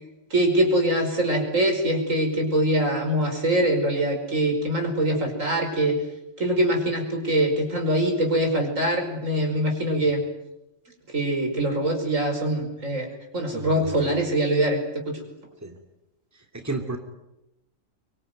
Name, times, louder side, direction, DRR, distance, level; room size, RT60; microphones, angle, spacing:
voice 1, 0.3-6.0 6.4-10.2 11.1-13.1 13.3-15.2, right 1 dB, 75° right, 4 dB, 5.6 m, -23 dB
voice 2, 13.5-14.2 15.6-15.8 16.5-17.0, right 2 dB, 10° right, 5 dB, 2.7 m, -33 dB
24.5 x 24.0 x 9.3 m, 0.94 s
omnidirectional pair, 1.3 m